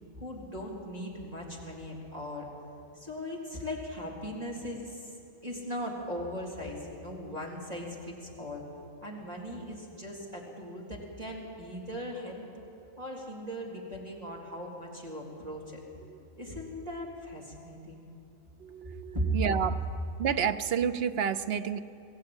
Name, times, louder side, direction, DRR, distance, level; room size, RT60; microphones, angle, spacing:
voice 1, 0.1-2.5 3.0-5.1 5.4-8.6 9.0-12.5 13.0-15.8 16.4-18.1 19.1-19.4, equal, 30° right, -3 dB, 3.8 m, -38 dB
voice 2, 18.6-19.8 20.2-21.8, right 7 dB, 55° right, 12 dB, 0.8 m, -30 dB
23.0 x 15.0 x 8.9 m, 2.7 s
omnidirectional pair, 1.4 m